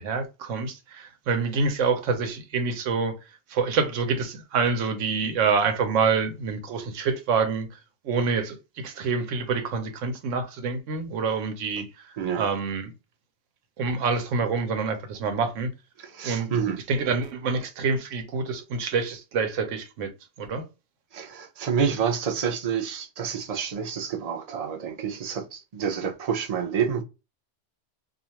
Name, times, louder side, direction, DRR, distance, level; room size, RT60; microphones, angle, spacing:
voice 1, 0.0-3.2 3.5-7.7 8.0-11.9 12.4-12.9 13.8-15.7 16.2-16.5 16.9-20.1 20.4-20.6, right 5 dB, 85° right, 1.0 m, -26 dB
voice 2, 16.0-16.8 21.1-27.0, right 7 dB, 45° right, 0.5 m, -28 dB
2.4 x 2.4 x 2.8 m
omnidirectional pair, 1.3 m